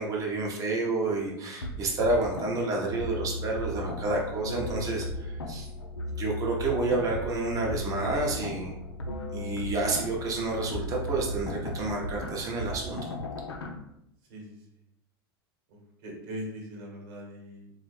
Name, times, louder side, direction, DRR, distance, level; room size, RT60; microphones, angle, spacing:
voice 1, 0.0-5.7 6.2-8.8 9.3-13.1, right 2 dB, 25° right, -1 dB, 0.9 m, -29 dB
sound 1, 1.6-13.7, left 1 dB, 75° left, 0.5 m, -36 dB
voice 2, 15.7-17.7, equal, 45° right, 0 dB, 1.2 m, -41 dB
3.9 x 2.3 x 3.2 m, 0.82 s
figure-of-eight pair, 85°, 13 cm